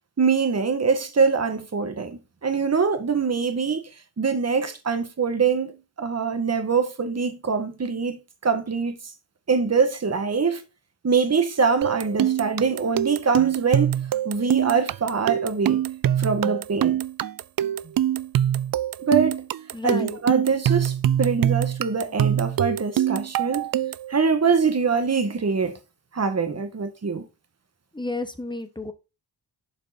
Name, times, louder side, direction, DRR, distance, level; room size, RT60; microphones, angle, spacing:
voice 1, 0.2-3.8 4.2-9.0 9.5-10.6 11.0-13.9 14.2-15.8 16.2-17.0 19.0-19.4 19.8-23.7 24.1-25.8 26.1-27.3, right 5 dB, 40° right, 1.8 m, -23 dB
sound 1, 11.8-24.1, right 11 dB, 55° right, 0.5 m, -24 dB
voice 2, 19.7-20.2 27.9-28.9, left 2 dB, 10° left, 1.3 m, -31 dB
11.5 x 5.3 x 4.3 m
wide cardioid pair, 100°, 40 cm